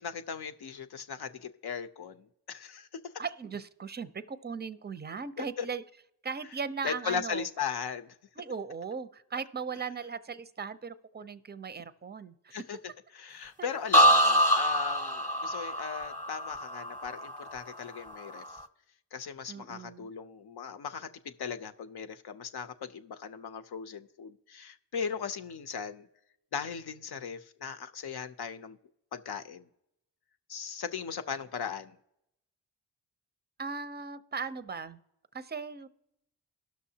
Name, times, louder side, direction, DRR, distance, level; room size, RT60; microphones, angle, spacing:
voice 1, 0.0-3.1 5.4-5.7 6.8-8.1 12.5-12.8 13.1-18.6 19.1-26.1 26.5-28.8 29.1-29.7 30.5-32.0, left 6 dB, 60° left, 0.7 m, -38 dB
voice 2, 3.2-5.8 6.2-7.5 8.4-12.6 13.6-13.7 19.5-20.1 33.6-35.0 35.3-35.9, right 5 dB, 25° right, 0.5 m, -38 dB
sound 1, 13.9-17.7 18.1-18.6, equal, 5° left, 0.9 m, -25 dB
18.0 x 6.2 x 2.8 m
cardioid pair, 40°, 43 cm